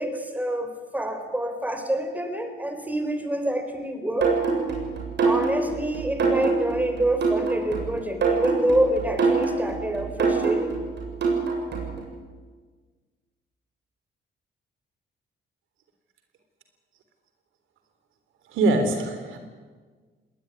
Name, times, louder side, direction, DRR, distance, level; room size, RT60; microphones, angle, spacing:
voice 1, 0.0-4.3 5.2-10.8, right 1 dB, 10° right, 7 dB, 3.9 m, -27 dB
sound 1, 4.2-12.0, right 4 dB, 60° right, 7.2 m, -25 dB
voice 2, 18.5-19.4, right 2 dB, 85° right, 8 dB, 3.6 m, -23 dB
21.0 x 19.0 x 9.7 m, 1.4 s
cardioid pair, 90°, 20 cm